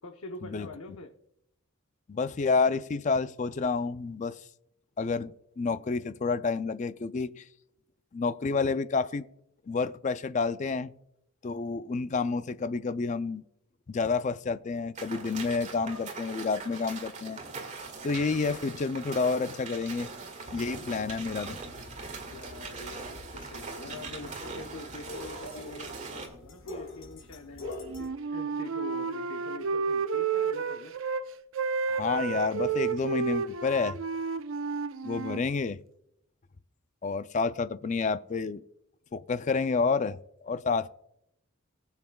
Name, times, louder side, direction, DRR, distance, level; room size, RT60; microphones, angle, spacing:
voice 1, 0.0-1.1 22.3-31.0, left 2 dB, 90° left, 0.9 m, -45 dB
voice 2, 2.1-4.4 5.0-7.4 8.1-9.2 9.7-10.9 11.4-13.4 13.9-17.4 18.0-20.1 20.5-21.6 31.9-34.0 35.0-35.8 37.0-38.6 39.1-40.9, left 4 dB, 35° left, 0.4 m, -29 dB
sound 1, 14.9-26.3, right 4 dB, 35° right, 1.8 m, -41 dB
sound 2, 20.4-28.1, left 2 dB, 70° left, 2.3 m, -45 dB
Wind instrument woodwind instrument, 27.8-31.2 31.5-35.4, right 5 dB, 70° right, 0.6 m, -31 dB
19.5 x 7.2 x 2.3 m
head